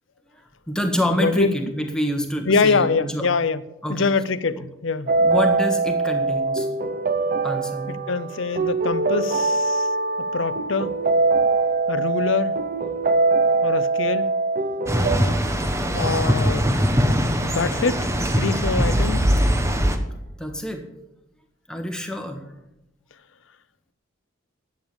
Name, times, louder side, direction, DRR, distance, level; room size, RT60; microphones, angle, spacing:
voice 1, 0.3-3.3 3.8-4.1 5.2-6.7 7.4-8.0 20.4-20.8 21.7-22.4, left 1 dB, 5° left, 1.5 m, -27 dB
voice 2, 1.1-1.6 2.5-3.6 3.9-5.1 7.9-9.9 10.2-10.9 11.9-12.6 13.6-14.3 15.9-16.7 17.4-19.4, left 4 dB, 70° left, 0.7 m, -24 dB
sound 1, 5.1-15.2, right 3 dB, 45° right, 0.9 m, -22 dB
sound 2, 14.9-20.0, equal, 15° right, 1.0 m, -21 dB
11.5 x 8.8 x 7.1 m
head